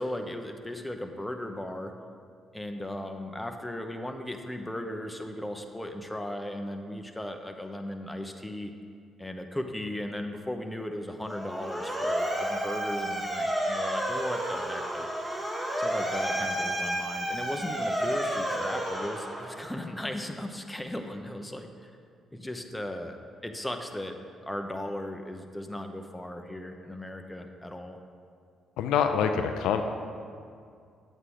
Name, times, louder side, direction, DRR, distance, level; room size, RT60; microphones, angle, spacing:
voice 1, 0.0-1.9 2.5-8.7 9.2-15.1 15.8-21.9 22.3-23.2 23.4-24.2 24.4-28.0, left 1 dB, 10° left, 4 dB, 0.9 m, -37 dB
Motor vehicle (road) / Siren, 11.2-19.8, right 1 dB, 15° right, 2.1 m, -31 dB
voice 2, 28.8-29.8, left 7 dB, 75° left, 6 dB, 0.5 m, -25 dB
9.2 x 8.0 x 3.9 m, 2.2 s
hypercardioid pair, 50°, 0 cm